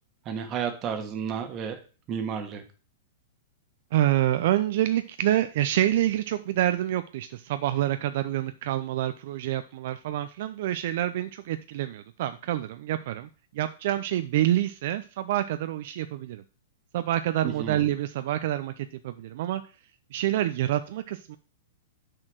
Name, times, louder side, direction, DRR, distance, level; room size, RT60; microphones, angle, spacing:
voice 1, 0.2-1.8 2.1-2.6 17.4-17.8, right 7 dB, 30° right, 7 dB, 1.4 m, -32 dB
voice 2, 3.9-13.3 13.5-16.4 16.9-19.6 20.1-21.4, right 13 dB, 60° right, 11 dB, 0.5 m, -27 dB
6.2 x 4.4 x 6.4 m, 0.37 s
hypercardioid pair, 135°, 0 cm